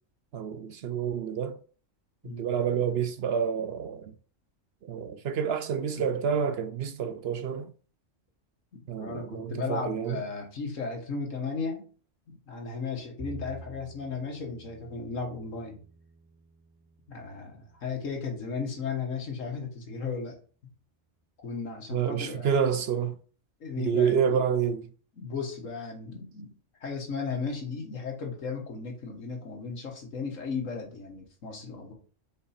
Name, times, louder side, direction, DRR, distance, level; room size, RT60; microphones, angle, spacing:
voice 1, 0.3-1.6 2.4-4.1 4.8-7.7 8.9-10.2 21.9-23.2 23.8-24.8, right 7 dB, 65° right, 0.7 m, -28 dB
voice 2, 2.2-2.6 8.7-11.8 12.3-15.8 17.1-20.4 21.4-22.6 23.6-24.5 25.2-26.5 26.8-31.9, left 5 dB, 80° left, 1.9 m, -35 dB
Bowed string instrument, 13.2-19.5, right 3 dB, 10° right, 0.5 m, -50 dB
5.3 x 4.5 x 4.3 m
omnidirectional pair, 1.3 m